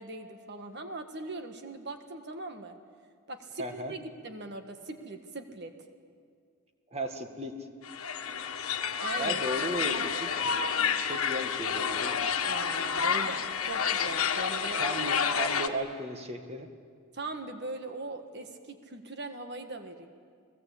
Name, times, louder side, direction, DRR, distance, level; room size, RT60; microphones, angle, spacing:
voice 1, 0.0-2.8 3.3-5.7 9.0-10.2 12.5-14.8 17.1-20.1, right 2 dB, 50° right, 6 dB, 1.6 m, -40 dB
voice 2, 3.6-4.0 6.9-7.5 9.2-10.0 10.4-10.6 11.0-12.2 14.8-16.7, right 1 dB, 30° right, 5 dB, 1.8 m, -35 dB
sound 1, 7.8-15.7, left 7 dB, 75° left, 1.5 m, -29 dB
30.0 x 19.5 x 8.5 m, 2.1 s
head